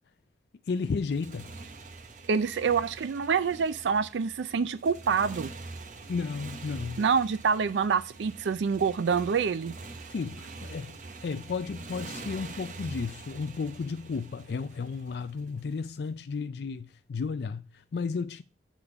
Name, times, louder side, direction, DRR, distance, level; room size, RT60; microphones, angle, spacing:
voice 1, 0.7-1.5 6.1-7.0 10.1-10.9 11.2-18.4, left 5 dB, 65° left, 0.4 m, -33 dB
Motorcycle, 0.8-15.9, right 3 dB, 45° right, 0.8 m, -45 dB
voice 2, 2.3-5.5 7.0-9.8, right 6 dB, 85° right, 0.4 m, -26 dB
8.2 x 3.7 x 6.8 m
head